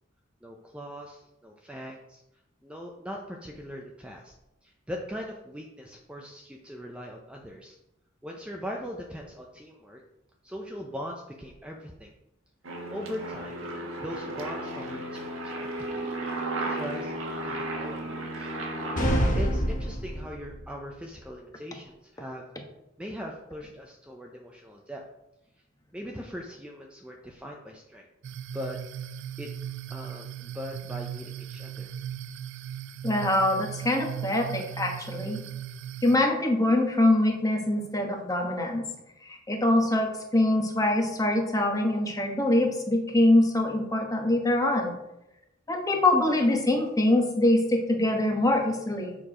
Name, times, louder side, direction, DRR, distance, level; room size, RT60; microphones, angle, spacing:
voice 1, 0.4-2.2 2.6-4.3 4.6-7.8 8.2-10.0 10.4-12.1 12.9-13.7 14.0-16.1 16.7-18.5 19.3-22.4 23.0-25.0 25.9-28.1 28.5-28.8 29.4-29.5 29.9-31.9, equal, 5° right, 0 dB, 0.6 m, -40 dB
Aircraft, 12.6-19.3, right 1 dB, 80° right, 1.4 m, -34 dB
sound 1, 19.0-20.6, equal, 40° left, 1.1 m, -26 dB
sound 2, 28.2-36.2, right 10 dB, 65° right, 0.3 m, -38 dB
voice 2, 33.0-35.4 36.0-38.8 39.2-44.9 45.7-49.2, left 1 dB, 15° left, 2 dB, 1.1 m, -24 dB
7.1 x 4.5 x 4.9 m, 0.89 s
head